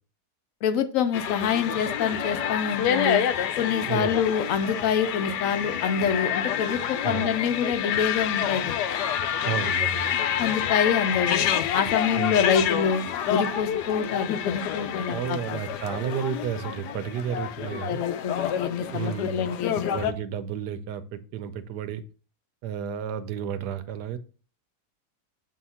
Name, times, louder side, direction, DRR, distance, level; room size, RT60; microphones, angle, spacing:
voice 1, 0.6-3.2 3.6-8.8 10.4-11.4 11.7-13.0 13.3-15.6 17.9-19.9, left 7 dB, 65° left, 9 dB, 0.9 m, -26 dB
sound 1, 1.1-20.1, left 9 dB, 80° left, 1.2 m, -28 dB
voice 2, 9.4-10.2 12.1-12.4 15.1-18.1 18.9-19.5 19.9-22.0 22.6-24.2, right 8 dB, 90° right, 11 dB, 1.2 m, -32 dB
7.5 x 2.9 x 5.5 m, 0.38 s
omnidirectional pair, 1.7 m